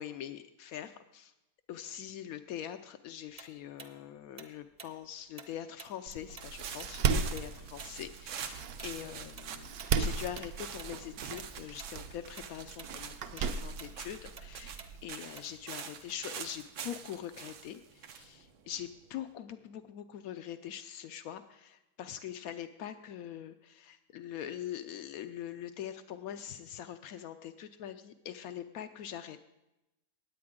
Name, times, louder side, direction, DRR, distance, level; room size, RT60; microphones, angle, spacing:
voice 1, 0.0-1.3 1.7-29.5, left 10 dB, 90° left, 9 dB, 0.7 m, -43 dB
Tick-tock, 3.4-6.5 6.8-11.5 11.8-12.0 12.4-12.9 13.2-17.2, right 4 dB, 40° right, 0.6 m, -52 dB
Door, 6.1-15.0, right 5 dB, 65° right, 0.9 m, -36 dB
sound 1, 6.4-19.2, right 8 dB, 85° right, 1.6 m, -46 dB
19.0 x 8.5 x 3.7 m, 0.94 s
omnidirectional pair, 2.1 m